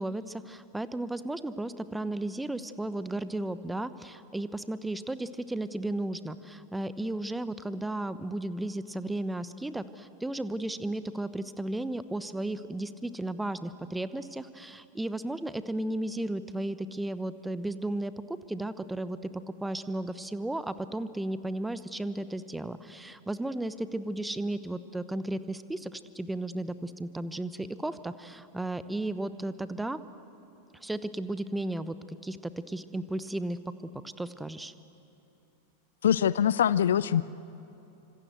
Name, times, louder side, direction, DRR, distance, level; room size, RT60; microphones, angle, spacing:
voice 1, 0.0-19.3 19.6-30.0 30.7-33.6 34.0-34.7, right 1 dB, 5° right, 14 dB, 0.9 m, -34 dB
voice 2, 36.0-37.2, left 9 dB, 65° left, 18 dB, 0.5 m, -23 dB
26.0 x 26.0 x 8.1 m, 2.9 s
figure-of-eight pair, 90°, 0 cm